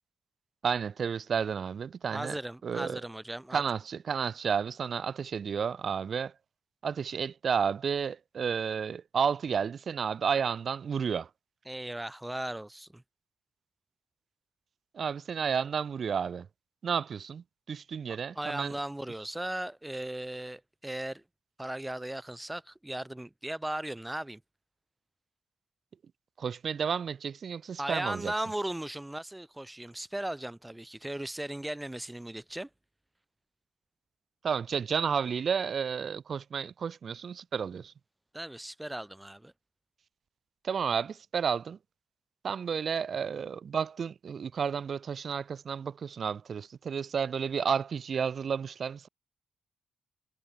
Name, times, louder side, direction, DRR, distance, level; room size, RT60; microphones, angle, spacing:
voice 1, 0.6-2.4 2.6-3.0 3.5-6.3 6.8-11.3 14.9-16.5 16.8-18.7 26.4-28.3 34.4-37.9 40.6-41.8 42.4-49.1, right 6 dB, 55° right, 3.6 m, -31 dB
voice 2, 2.1-3.6 11.7-13.0 18.3-21.2 21.6-24.4 27.8-32.7 38.3-39.5, right 1 dB, 10° right, 6.5 m, -37 dB
cardioid pair, 95°, 0 cm